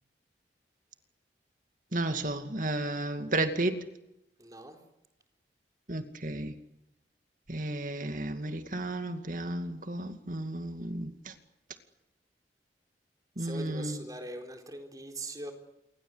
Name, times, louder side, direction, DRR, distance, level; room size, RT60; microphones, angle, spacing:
voice 1, 1.9-3.8 5.9-6.5 7.5-11.3 13.4-14.0, right 2 dB, 50° right, 2.4 m, -33 dB
voice 2, 4.4-4.8 13.4-15.5, right 2 dB, 20° right, 4.1 m, -41 dB
28.5 x 24.0 x 8.1 m
head